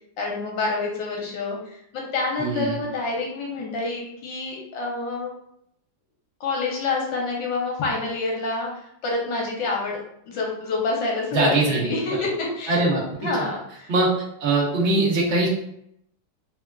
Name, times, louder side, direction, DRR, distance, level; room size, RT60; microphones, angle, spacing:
voice 1, 0.2-5.3 6.4-12.9 13.2-13.9, left 3 dB, 75° left, -1 dB, 1.3 m, -27 dB
voice 2, 2.4-2.8 11.3-11.9 12.7-13.0 13.9-14.1 14.4-15.5, right 2 dB, 65° right, -4 dB, 0.7 m, -21 dB
3.4 x 2.3 x 2.2 m, 0.74 s
omnidirectional pair, 2.2 m